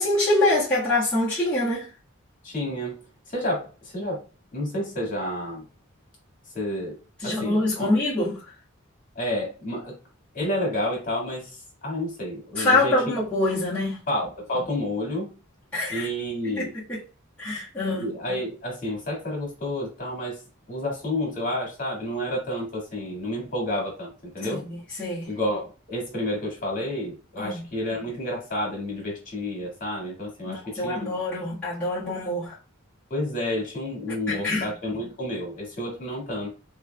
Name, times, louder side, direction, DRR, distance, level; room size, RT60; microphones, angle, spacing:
voice 1, 0.0-1.9 7.2-8.4 12.6-14.0 15.7-16.1 16.4-17.0 17.4-18.1 24.4-25.3 27.4-27.6 30.4-32.5 34.3-34.7, left 2 dB, 5° left, 1.5 m, -25 dB
voice 2, 2.4-3.0 3.3-4.2 4.5-5.6 6.5-7.0 7.2-7.9 9.2-10.0 10.3-13.2 14.1-15.3 15.9-16.7 17.9-20.4 20.7-24.6 25.2-31.1 33.1-36.5, left 1 dB, 40° left, 1.9 m, -30 dB
3.9 x 3.4 x 2.2 m
head